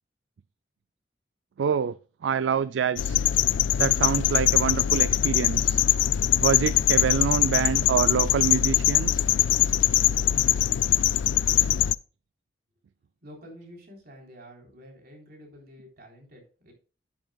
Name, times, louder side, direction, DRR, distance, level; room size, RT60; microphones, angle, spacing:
voice 1, 1.6-2.0 2.2-3.2 3.8-5.8 6.4-9.2, right 7 dB, 75° right, 0.4 m, -26 dB
sound 1, 3.0-12.0, left 12 dB, 85° left, 0.3 m, -22 dB
voice 2, 13.2-16.7, equal, 55° right, 3.7 m, -48 dB
12.0 x 7.7 x 2.3 m
head